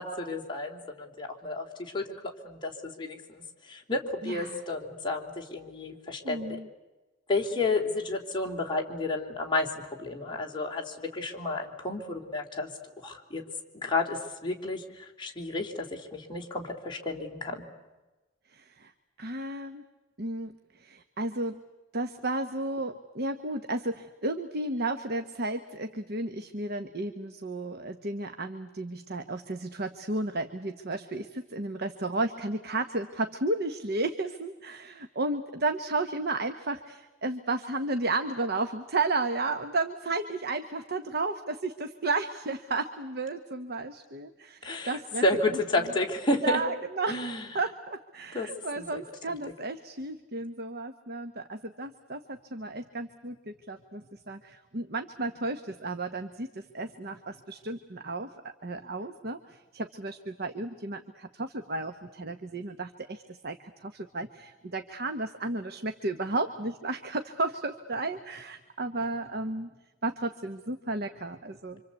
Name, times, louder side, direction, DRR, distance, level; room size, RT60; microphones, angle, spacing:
voice 1, 0.0-2.0 2.4-2.7 3.0-6.5 7.3-9.7 10.0-12.7 13.0-13.4 13.7-17.7 44.6-46.6 47.1-47.4 48.3-49.0, left 2 dB, 25° left, 0 dB, 3.2 m, -31 dB
voice 2, 4.2-4.6 6.2-6.7 18.5-18.9 19.2-19.8 20.2-21.6 21.9-45.2 45.5-45.9 46.4-47.3 47.5-69.7 70.0-71.8, right 2 dB, 55° right, 8 dB, 1.2 m, -33 dB
26.5 x 26.0 x 8.3 m, 1.1 s
head